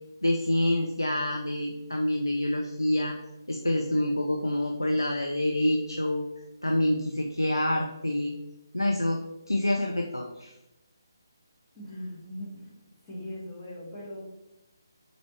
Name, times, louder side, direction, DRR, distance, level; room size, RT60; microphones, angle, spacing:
voice 1, 0.2-3.1 3.5-6.3 6.6-8.3 8.7-9.2 9.5-10.5, left 1 dB, 80° left, 2 dB, 0.4 m, -27 dB
voice 2, 11.7-12.7 13.0-14.3, left 1 dB, 15° left, -8 dB, 1.4 m, -40 dB
3.9 x 3.3 x 3.1 m, 0.92 s
figure-of-eight pair, 145°, 2 cm